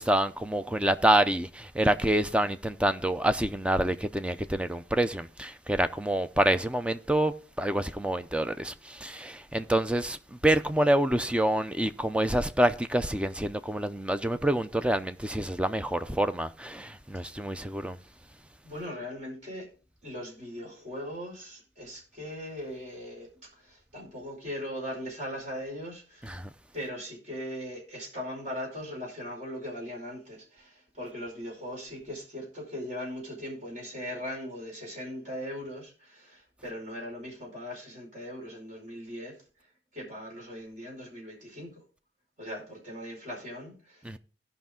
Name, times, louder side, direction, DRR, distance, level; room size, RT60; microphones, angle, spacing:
voice 1, 0.0-18.0 26.2-26.5 44.0-44.2, right 1 dB, 5° right, 0.5 m, -27 dB
voice 2, 18.6-19.7 20.0-26.4 26.7-39.4 39.9-41.8 42.4-44.2, equal, 45° right, 5.0 m, -39 dB
16.5 x 5.7 x 3.7 m
head